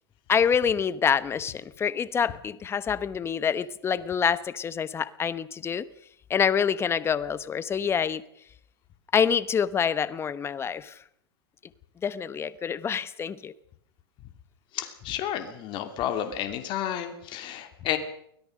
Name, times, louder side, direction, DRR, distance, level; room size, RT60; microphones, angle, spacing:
voice 1, 0.3-5.8 6.3-8.2 9.1-11.0 12.0-13.5, left 7 dB, 20° left, 1.0 m, -26 dB
voice 2, 14.7-18.0, left 11 dB, 40° left, 2.7 m, -31 dB
24.0 x 17.0 x 6.5 m
hypercardioid pair, 125°, 13 cm